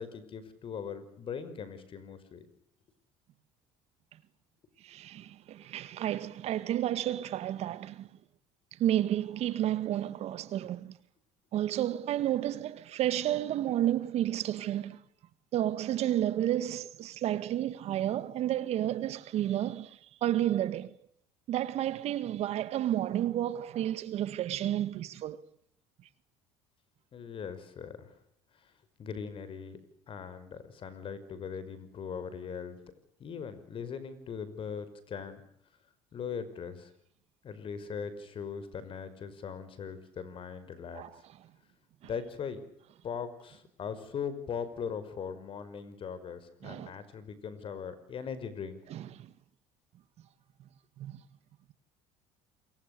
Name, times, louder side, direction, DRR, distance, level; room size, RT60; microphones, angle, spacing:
voice 1, 0.0-2.5 27.1-28.2 28.5-28.7 29.0-29.8 30.1-32.8 33.2-35.4 36.1-36.9 37.4-41.2 42.0-42.6 43.0-48.8, left 6 dB, 45° left, 5.3 m, -40 dB
voice 2, 4.9-8.1 8.8-10.9 11.5-15.0 15.5-19.9 20.2-20.9 21.5-25.4 40.9-41.1 46.6-46.9 48.9-49.0 51.0-51.2, right 12 dB, 55° right, 1.8 m, -31 dB
28.0 x 23.0 x 6.8 m
supercardioid pair, 90°, 13 cm